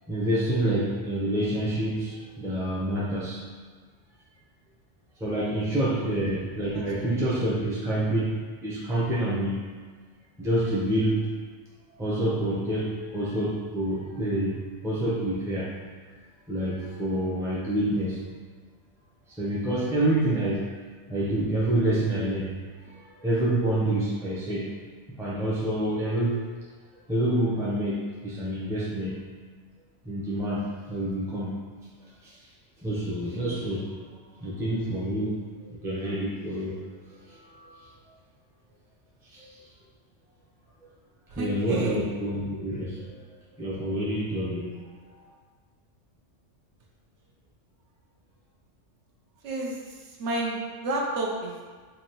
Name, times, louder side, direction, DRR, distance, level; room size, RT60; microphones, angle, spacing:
voice 1, 0.1-3.4 5.2-9.6 10.4-11.3 12.0-15.7 16.5-18.2 19.4-20.7 21.1-24.7 25.1-26.5 27.1-29.3 30.0-31.6 32.2-32.4 32.8-33.9 34.4-37.9 39.3-39.6 41.3-43.2 43.6-44.7, right 1 dB, 5° right, -7 dB, 0.5 m, -28 dB
voice 2, 41.3-42.0 49.4-49.8 50.2-51.6, right 2 dB, 70° right, -2 dB, 0.9 m, -30 dB
4.9 x 2.5 x 2.9 m, 1.5 s
omnidirectional pair, 1.3 m